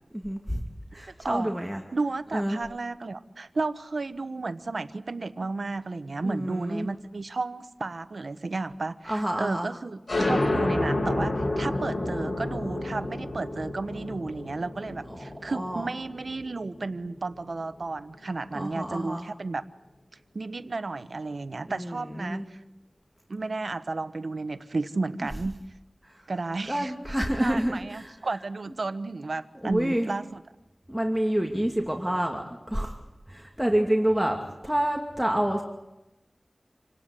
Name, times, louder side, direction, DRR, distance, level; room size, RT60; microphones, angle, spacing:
voice 1, 0.1-0.6 0.9-1.8 2.3-2.6 6.2-6.9 9.0-9.7 15.1-15.9 18.5-19.3 21.7-22.5 26.0-26.3 26.7-28.1 29.6-30.1 30.9-33.0 33.3-34.4 34.6-35.6, right 1 dB, 5° right, 2 dB, 2.5 m, -28 dB
voice 2, 0.9-1.5 1.9-19.6 20.3-22.6 23.3-25.6 26.3-26.9 27.4-30.3, right 3 dB, 80° right, 12 dB, 1.1 m, -33 dB
sound 1, 10.1-17.3, left 1 dB, 60° left, 3.2 m, -29 dB
27.5 x 18.0 x 9.8 m, 0.97 s
wide cardioid pair, 45°, 0 cm